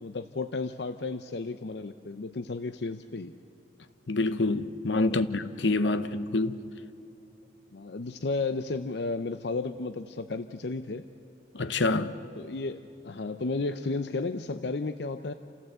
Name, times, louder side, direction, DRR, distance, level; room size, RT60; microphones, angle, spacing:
voice 1, 0.0-3.3 4.9-5.2 5.8-5.9 7.7-11.0 12.4-15.3, left 3 dB, 65° left, 0.6 m, -33 dB
voice 2, 4.1-6.6 11.5-12.2, left 2 dB, 85° left, 1.0 m, -27 dB
28.5 x 15.5 x 8.0 m
head